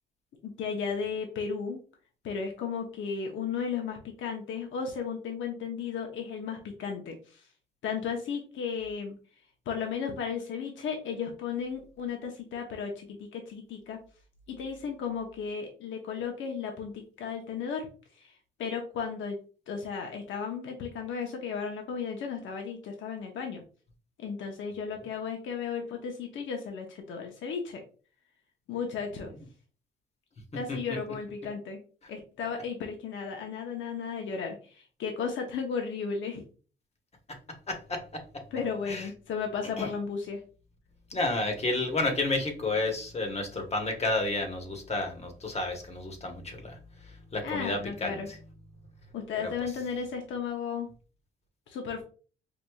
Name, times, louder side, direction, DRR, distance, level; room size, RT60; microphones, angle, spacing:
voice 1, 0.4-1.8 2.2-7.4 7.8-9.2 9.7-14.0 14.5-17.9 18.2-18.3 18.6-19.4 19.7-23.6 24.2-27.8 28.7-29.3 30.5-31.8 32.1-36.4 38.5-40.4 47.4-48.3 49.1-50.9 51.7-52.0, left 6 dB, 75° left, 3 dB, 0.8 m, -34 dB
voice 2, 37.7-38.2 38.9-39.1 39.8-39.9 41.1-46.8 47.3-48.2 49.4-49.5, left 2 dB, 30° left, 4 dB, 1.0 m, -31 dB
4.7 x 2.5 x 2.2 m, 0.38 s
cardioid pair, 90°, 20 cm